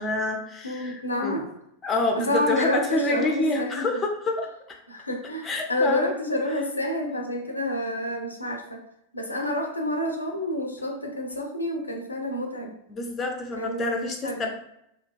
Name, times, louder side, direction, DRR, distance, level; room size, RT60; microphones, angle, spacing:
voice 1, 0.0-1.5 1.8-4.5 5.4-6.1 6.5-6.6 12.9-14.5, left 2 dB, 20° left, 2 dB, 0.4 m, -27 dB
voice 2, 0.6-1.5 2.2-3.9 4.9-8.8 9.1-12.7 13.6-14.4, left 1 dB, 80° left, 2 dB, 0.4 m, -29 dB
2.5 x 2.2 x 2.2 m, 0.77 s
figure-of-eight pair, 90°, 0 cm